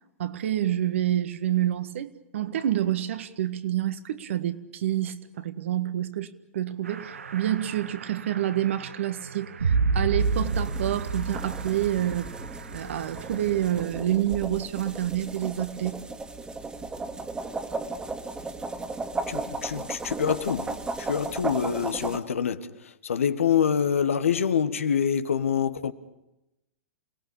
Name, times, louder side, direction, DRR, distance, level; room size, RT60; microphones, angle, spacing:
voice 1, 0.2-6.3 6.5-12.3 12.7-16.0, right 12 dB, 70° right, 1.6 m, -28 dB
sound 1, 6.9-13.8, right 4 dB, 85° right, 1.1 m, -30 dB
sound 2, 10.2-22.2, right 3 dB, 10° right, 2.1 m, -35 dB
voice 2, 19.3-22.7 23.0-25.9, left 7 dB, 80° left, 1.4 m, -26 dB
28.5 x 18.5 x 8.6 m
hypercardioid pair, 110°, 7 cm